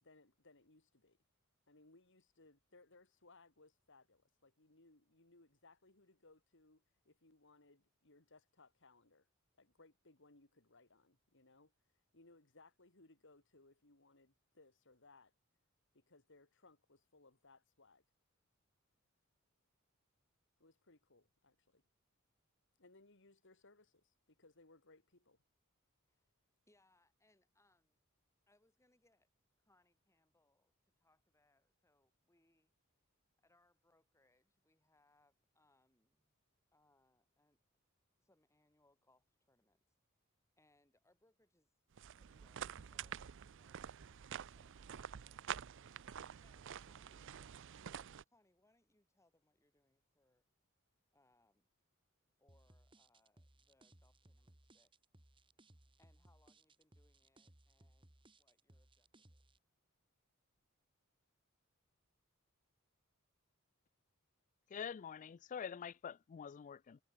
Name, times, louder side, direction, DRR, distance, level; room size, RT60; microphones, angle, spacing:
voice 1, 0.0-1.2 1.7-9.3 9.6-11.7 12.1-15.3 15.9-18.0 20.6-21.8 22.8-25.4, left 3 dB, 60° left, 3.3 m, -66 dB
voice 2, 26.6-28.0 28.5-29.3 29.6-32.7 33.4-36.4 36.7-37.6 38.2-39.8 40.6-41.7 42.2-45.6 46.4-47.5 47.8-50.5 51.1-51.7 52.4-54.9 56.0-59.4, left 2 dB, 15° left, 6.1 m, -76 dB
sound 1, 41.9-48.2, right 9 dB, 60° right, 0.5 m, -48 dB
sound 2, 52.5-59.6, right 1 dB, 25° right, 2.0 m, -66 dB
voice 3, 64.7-67.0, left 7 dB, 35° left, 0.3 m, -46 dB
head